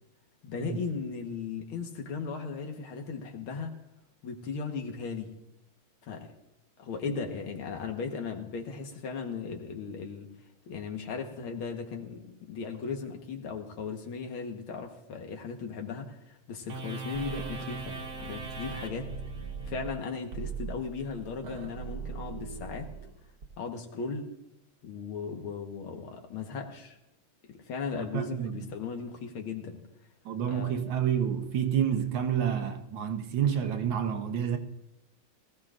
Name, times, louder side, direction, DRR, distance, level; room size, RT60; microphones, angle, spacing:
voice 1, 0.4-3.7 4.2-5.3 6.1-6.3 6.8-10.3 10.7-19.1 19.7-22.9 23.6-24.3 24.8-27.0 27.4-29.8 30.5-30.8, left 5 dB, 75° left, 2.1 m, -37 dB
sound 1, 16.7-23.5, right 5 dB, 50° right, 1.6 m, -39 dB
voice 2, 28.0-28.6 30.2-34.6, right 9 dB, 65° right, 1.5 m, -29 dB
20.0 x 15.0 x 2.5 m
omnidirectional pair, 2.4 m